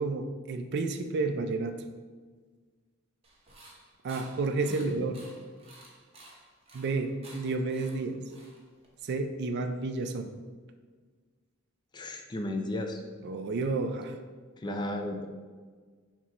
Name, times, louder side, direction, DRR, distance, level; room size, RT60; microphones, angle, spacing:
voice 1, 0.0-1.8 4.0-5.2 6.7-8.2 9.0-10.5 13.2-14.2, right 3 dB, 55° right, 7 dB, 0.3 m, -31 dB
sound 1, 3.2-9.0, right 2 dB, 30° right, 0.9 m, -53 dB
voice 2, 4.7-5.1 11.9-13.0 14.6-15.3, left 1 dB, 20° left, 4 dB, 0.4 m, -34 dB
6.0 x 2.0 x 4.3 m, 1.5 s
head